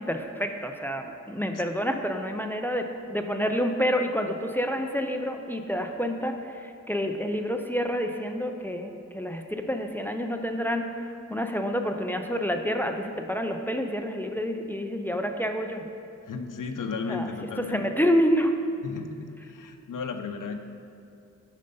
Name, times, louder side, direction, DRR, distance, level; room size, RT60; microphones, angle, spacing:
voice 1, 0.0-15.9 17.1-17.3 17.6-18.5, equal, 5° left, 5 dB, 0.5 m, -28 dB
voice 2, 16.2-17.9 18.8-20.5, left 4 dB, 85° left, 6 dB, 0.7 m, -34 dB
9.0 x 6.6 x 5.4 m, 2.6 s
wide cardioid pair, 135°, 31 cm